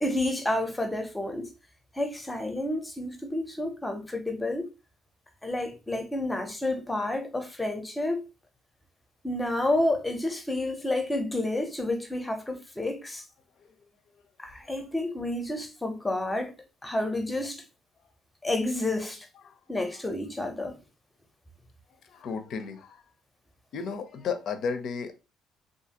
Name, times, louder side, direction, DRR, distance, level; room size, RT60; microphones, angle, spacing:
voice 1, 0.0-1.5 1.9-4.7 5.4-8.2 9.2-13.2 14.4-16.5 16.8-17.6 18.4-19.3 19.7-20.8, left 1 dB, 10° left, 0.7 m, -30 dB
voice 2, 22.0-23.0 23.7-25.1, left 5 dB, 60° left, 0.5 m, -33 dB
2.6 x 2.5 x 2.8 m
cardioid pair, 95°, 0 cm